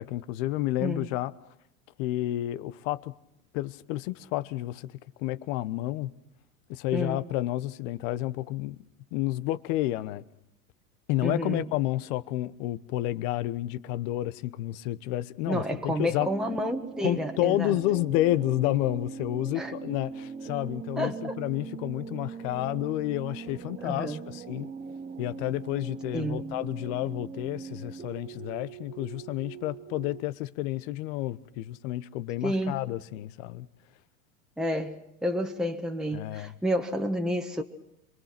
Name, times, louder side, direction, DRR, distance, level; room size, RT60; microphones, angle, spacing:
voice 1, 0.0-1.3 2.0-3.1 3.5-4.9 5.2-6.1 6.7-8.8 9.1-10.2 11.1-16.3 17.0-24.7 25.2-33.7 36.1-36.6, left 15 dB, 60° left, 1.1 m, -30 dB
voice 2, 11.2-11.6 15.5-17.8 19.5-19.7 21.0-21.4 23.8-24.2 26.1-26.5 32.4-32.8 34.6-37.6, equal, ahead, 1.5 m, -30 dB
sound 1, 16.2-30.2, right 6 dB, 20° right, 0.9 m, -41 dB
27.0 x 23.0 x 6.0 m
hypercardioid pair, 100°, 44 cm